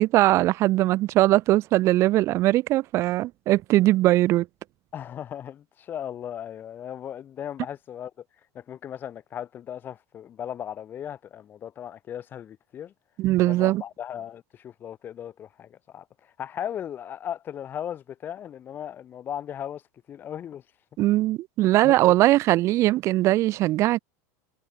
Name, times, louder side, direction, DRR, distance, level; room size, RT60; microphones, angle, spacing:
voice 1, 0.0-4.5 13.2-13.8 21.0-24.0, right 16 dB, 30° right, 1.6 m, -20 dB
voice 2, 4.9-8.1 8.5-12.9 13.4-16.0 16.4-19.8 20.1-20.6 21.8-22.1, left 10 dB, 20° left, 6.3 m, -37 dB
supercardioid pair, 175°, 9 cm